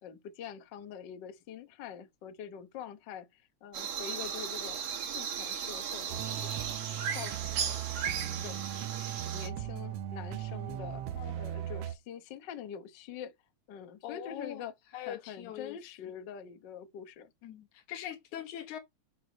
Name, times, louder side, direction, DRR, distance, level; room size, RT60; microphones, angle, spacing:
voice 1, 0.0-4.9 5.1-6.5 6.9-7.8 8.2-9.0 9.3-13.3 13.7-14.7 15.1-17.3, left 8 dB, 60° left, 1.2 m, -45 dB
sound 1, 3.7-9.5, right 7 dB, 85° right, 3.1 m, -36 dB
sound 2, 6.1-11.9, right 12 dB, 70° right, 1.8 m, -38 dB
voice 2, 14.0-14.7 14.9-16.1 17.4-18.8, left 11 dB, 80° left, 2.5 m, -42 dB
6.7 x 4.7 x 5.2 m
omnidirectional pair, 3.4 m